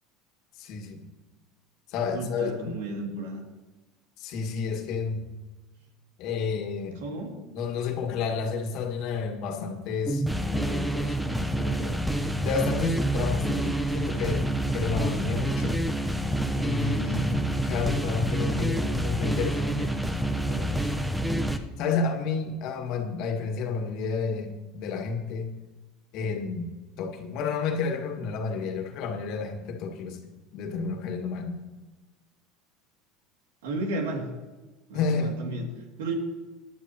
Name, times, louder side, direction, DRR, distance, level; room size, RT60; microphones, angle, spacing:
voice 1, 0.6-1.1 1.9-2.8 4.2-5.3 6.2-7.0 7.5-12.0 12.4-15.8 16.6-20.0 20.3-20.9 21.6-25.5 26.1-26.7 27.0-30.2 30.5-31.6 34.9-35.4, left 5 dB, 60° left, 3 dB, 1.9 m, -31 dB
voice 2, 2.1-3.4 7.0-7.3 33.6-34.3 34.9-35.7 36.0-36.1, right 2 dB, 85° right, 2 dB, 2.5 m, -32 dB
sound 1, 10.1-21.6, right 1 dB, 5° right, 0.9 m, -27 dB
18.0 x 10.5 x 3.0 m, 1.2 s
supercardioid pair, 105°, 0 cm